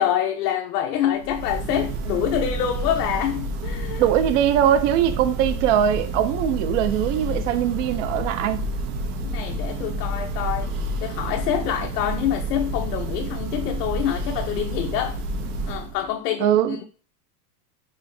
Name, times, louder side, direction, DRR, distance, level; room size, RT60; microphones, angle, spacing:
voice 1, 0.0-4.1 9.2-15.2 15.7-16.9, left 10 dB, 80° left, 0.6 m, -26 dB
Church bell, 1.1-16.1, right 2 dB, 70° right, 0.9 m, -29 dB
sound 1, 1.7-14.4, left 3 dB, 15° left, 0.5 m, -45 dB
voice 2, 4.0-8.6 16.4-16.8, right 10 dB, 55° right, 0.5 m, -21 dB
4.5 x 2.7 x 3.2 m
supercardioid pair, 160°, 47 cm